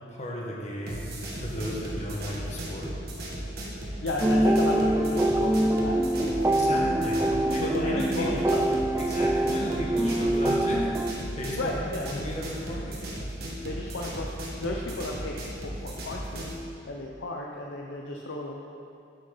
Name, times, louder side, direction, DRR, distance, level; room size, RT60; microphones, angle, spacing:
voice 1, 0.1-2.9 6.6-8.3 9.0-10.9 11.3-11.7 12.0-13.0, left 1 dB, 40° left, -4 dB, 1.5 m, -35 dB
sound 1, 0.9-16.6, right 1 dB, 60° right, 1.6 m, -36 dB
voice 2, 4.0-7.0 7.3-8.8 11.6-12.1 13.6-15.3 15.6-16.6 16.8-18.7, left 2 dB, 85° left, -1 dB, 0.7 m, -34 dB
sound 2, 4.2-11.1, right 1 dB, 15° right, 0.3 m, -25 dB
11.0 x 6.8 x 4.0 m, 2.6 s
head